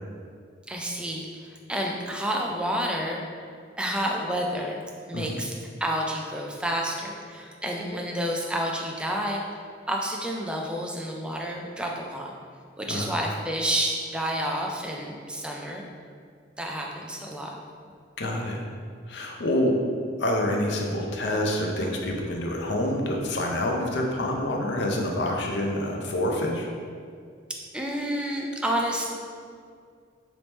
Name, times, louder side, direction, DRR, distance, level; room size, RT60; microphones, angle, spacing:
voice 1, 0.7-3.2 3.8-4.8 5.1-5.5 5.8-9.4 9.9-12.3 12.8-15.8 16.6-17.6 27.7-29.1, equal, 5° right, 0 dB, 0.3 m, -29 dB
voice 2, 18.2-18.6 19.1-19.8 20.2-26.7, left 1 dB, 60° left, 0 dB, 0.5 m, -27 dB
3.3 x 3.0 x 4.0 m, 2.2 s
head